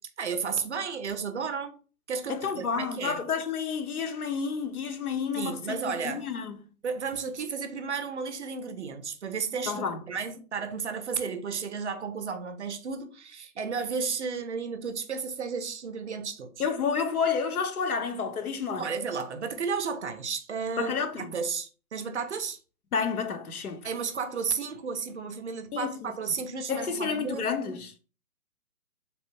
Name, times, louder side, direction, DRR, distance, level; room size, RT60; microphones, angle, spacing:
voice 1, 0.2-1.8 2.1-3.2 5.3-6.2 6.8-16.5 18.7-22.6 23.8-27.5, right 5 dB, 50° right, 0.5 m, -33 dB
voice 2, 2.3-6.6 9.7-10.0 16.6-18.9 20.8-21.4 22.9-23.9 25.7-26.1 26.7-28.0, left 6 dB, 75° left, 0.8 m, -30 dB
3.4 x 2.5 x 2.8 m
hypercardioid pair, 150°, 45 cm